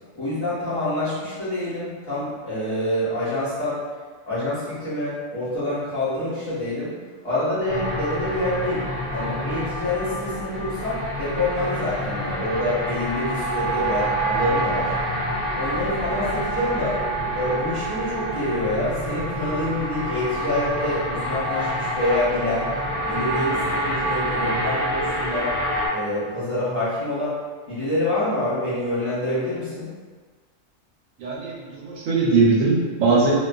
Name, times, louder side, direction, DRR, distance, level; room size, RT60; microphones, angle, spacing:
voice 1, 0.1-3.8 4.2-6.9 7.2-14.9 15.5-17.0 17.3-22.7 23.0-25.5 25.9-27.4 27.7-29.9, left 1 dB, 25° left, -14 dB, 1.0 m, -26 dB
sound 1, 7.7-25.9, right 1 dB, 35° right, 0.9 m, -27 dB
voice 2, 31.2-33.3, right 4 dB, 80° right, -5 dB, 1.0 m, -20 dB
2.5 x 2.3 x 2.3 m, 1.5 s
omnidirectional pair, 1.4 m